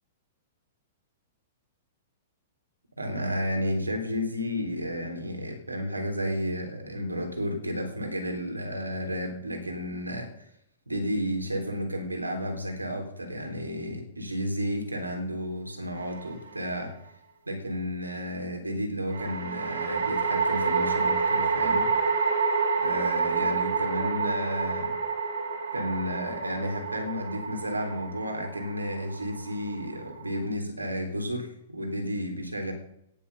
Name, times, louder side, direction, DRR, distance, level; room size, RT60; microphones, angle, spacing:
voice 1, 3.0-10.3 10.9-16.9 17.5-21.9 22.8-24.9 25.7-32.7, equal, 85° right, 4 dB, 3.5 m, -32 dB
sound 1, 16.0-16.7 19.1-30.4, right 5 dB, 65° right, 3.3 m, -28 dB
17.5 x 7.0 x 7.0 m, 0.76 s
figure-of-eight pair, 105°, 0 cm